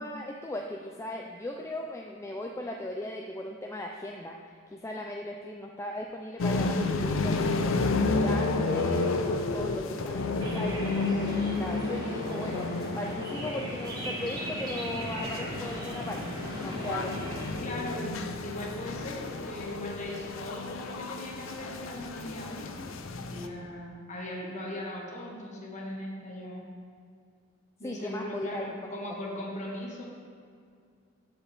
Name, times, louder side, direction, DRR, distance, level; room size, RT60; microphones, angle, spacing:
voice 1, 0.0-4.4 4.7-12.7 13.0-17.3 27.8-28.9, left 1 dB, 15° left, 1 dB, 0.3 m, -38 dB
sound 1, 6.4-23.5, left 3 dB, 75° left, 0.5 m, -31 dB
sound 2, 10.4-17.5, equal, 20° right, 1.3 m, -37 dB
voice 2, 17.6-26.6 27.8-30.0, left 1 dB, 35° left, -2 dB, 1.4 m, -39 dB
13.5 x 5.0 x 3.4 m, 2.2 s
head